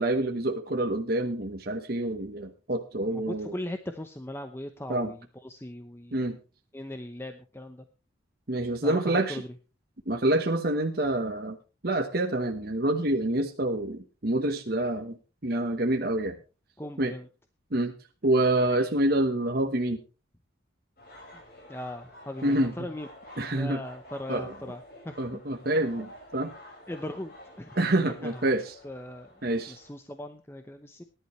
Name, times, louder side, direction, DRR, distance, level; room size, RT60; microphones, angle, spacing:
voice 1, 0.0-3.5 4.9-5.1 6.1-6.4 8.5-9.4 10.1-11.6 11.8-15.2 15.4-16.4 17.0-17.1 17.7-17.9 18.2-20.0 22.4-22.7 23.4-23.8 24.3-24.5 25.2-26.5 27.8-28.7 29.4-29.8, right 1 dB, 50° right, 3 dB, 1.1 m, -27 dB
voice 2, 3.0-6.3 6.7-7.8 8.8-9.5 16.8-17.3 21.3-21.4 21.7-23.1 23.5-25.4 26.9-27.7 28.2-28.6 28.8-29.3 29.7-31.0, left 1 dB, 10° left, 7 dB, 0.8 m, -39 dB
sound 1, 21.0-29.9, left 1 dB, 50° left, 5.4 m, -49 dB
18.5 x 11.0 x 3.2 m, 0.33 s
head